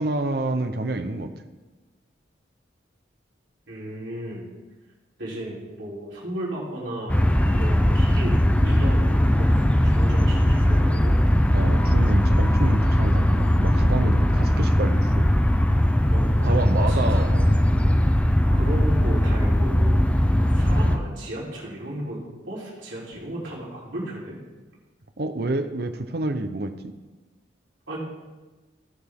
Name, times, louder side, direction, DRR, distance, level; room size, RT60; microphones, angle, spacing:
voice 1, 0.0-1.3 11.5-15.3 16.4-17.5 20.6-20.7 25.2-26.9, right 2 dB, 55° right, 8 dB, 0.8 m, -28 dB
voice 2, 3.7-4.5 5.2-11.2 16.1-17.3 18.5-20.0 20.3-22.2 22.4-24.4 27.9-28.0, right 1 dB, 80° right, -6 dB, 3.6 m, -35 dB
sound 1, 7.1-21.0, equal, 5° left, 0.5 m, -19 dB
17.0 x 7.0 x 3.6 m, 1.2 s
head